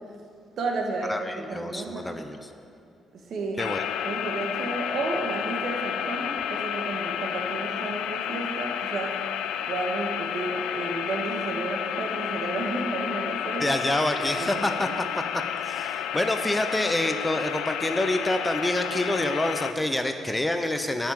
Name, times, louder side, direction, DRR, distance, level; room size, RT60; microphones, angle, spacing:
voice 1, 0.6-2.1 3.1-3.6 4.0-13.8 14.2-15.0, right 3 dB, 60° right, 1 dB, 1.7 m, -32 dB
voice 2, 1.1-2.5 3.6-3.8 13.6-14.9 15.1-21.1, left 1 dB, 10° left, 7 dB, 0.7 m, -27 dB
sound 1, 3.6-19.7, left 9 dB, 90° left, 0.4 m, -31 dB
11.0 x 5.9 x 8.9 m, 2.5 s
cardioid pair, 90°, 0 cm